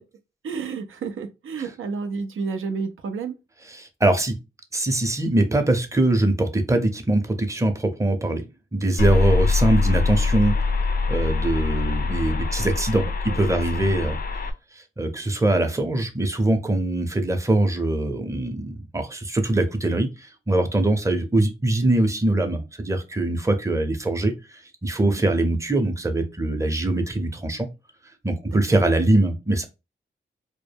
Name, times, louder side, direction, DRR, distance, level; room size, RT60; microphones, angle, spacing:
voice 1, 0.4-3.4 12.6-12.7 13.3-13.4 13.7-13.9 25.0-25.2 28.5-28.8, right 5 dB, 80° right, 0.4 m, -31 dB
voice 2, 3.7-4.4 4.7-8.4 8.7-10.6 11.1-14.2 15.0-27.7 28.2-29.7, right 1 dB, 15° right, 0.6 m, -22 dB
sound 1, 9.0-14.5, left 4 dB, 45° left, 0.4 m, -23 dB
2.1 x 2.1 x 3.3 m
cardioid pair, 55°, 21 cm